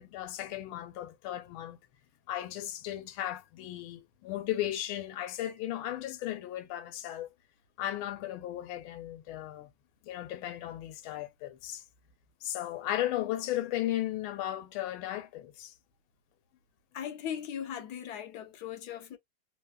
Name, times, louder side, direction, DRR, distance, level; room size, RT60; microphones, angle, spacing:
voice 1, 0.0-1.8 2.3-7.3 7.8-9.7 10.0-11.8 12.4-15.7, left 13 dB, 85° left, 1.4 m, -35 dB
voice 2, 16.9-19.2, left 9 dB, 70° left, 1.0 m, -38 dB
3.4 x 2.2 x 2.3 m
omnidirectional pair, 2.2 m